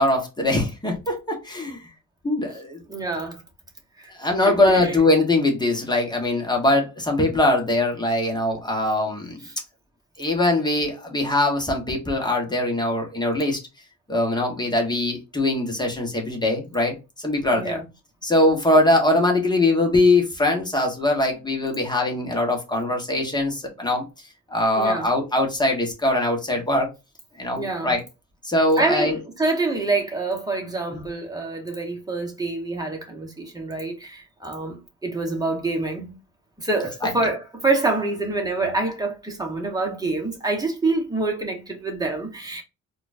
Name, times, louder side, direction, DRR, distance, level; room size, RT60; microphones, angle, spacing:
voice 1, 0.0-1.8 2.2-2.8 4.1-9.4 10.2-13.6 14.1-17.8 18.2-24.0 24.5-26.9 27.4-28.0 28.4-29.2 30.9-31.0 37.0-37.1, left 2 dB, 15° left, 1.4 m, -22 dB
voice 2, 2.9-3.4 4.0-4.1 4.7-4.9 17.5-17.8 24.8-25.1 27.5-27.9 28.8-36.1 36.6-42.6, right 3 dB, 10° right, 1.3 m, -26 dB
4.1 x 2.6 x 2.6 m
cardioid pair, 90°, 30 cm